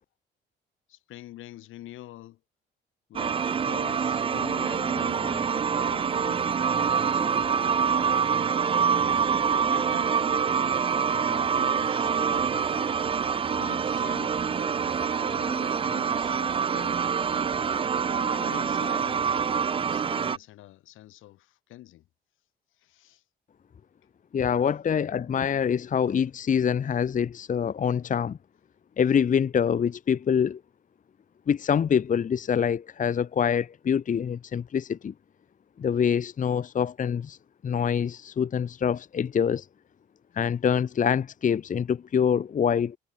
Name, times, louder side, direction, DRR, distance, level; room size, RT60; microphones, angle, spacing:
voice 1, 0.9-2.4 3.1-6.6 7.1-10.5 11.1-13.0 13.5-17.1 18.1-19.4 19.9-22.1 22.7-23.2, left 15 dB, 90° left, 7.6 m, -46 dB
sound 1, 3.1-20.4, right 6 dB, 25° right, 0.4 m, -26 dB
voice 2, 24.3-28.4 29.0-30.6 31.5-35.1 35.8-37.4 37.6-39.7 40.3-43.0, left 7 dB, 40° left, 0.9 m, -25 dB
cardioid pair, 90°, 20 cm